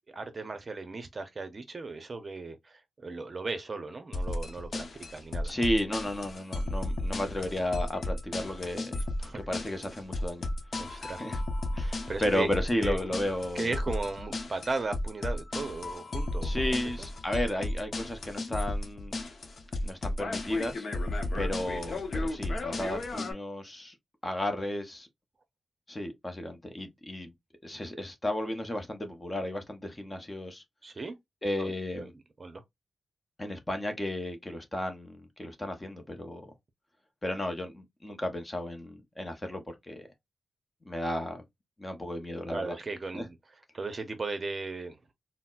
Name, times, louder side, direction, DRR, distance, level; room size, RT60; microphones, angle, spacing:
voice 1, 0.1-5.6 9.2-9.5 10.8-11.3 11.8-12.5 12.8-13.0 13.5-17.1 30.8-31.1 31.6-32.1 32.4-32.6 42.5-43.4 43.7-45.1, right 3 dB, 35° right, 0.6 m, -37 dB
sound 1, 4.1-23.3, left 2 dB, 55° left, 0.7 m, -34 dB
voice 2, 5.4-9.0 9.5-10.5 11.0-11.4 11.7-13.7 16.4-19.2 19.8-20.9 21.3-23.9 24.2-25.1 25.9-27.3 27.6-30.6 31.4-32.1 33.4-36.5 37.2-40.1 40.9-41.4 41.8-42.7 43.1-43.3, left 1 dB, 20° left, 0.7 m, -33 dB
4.1 x 2.0 x 2.3 m
wide cardioid pair, 120°, 0 cm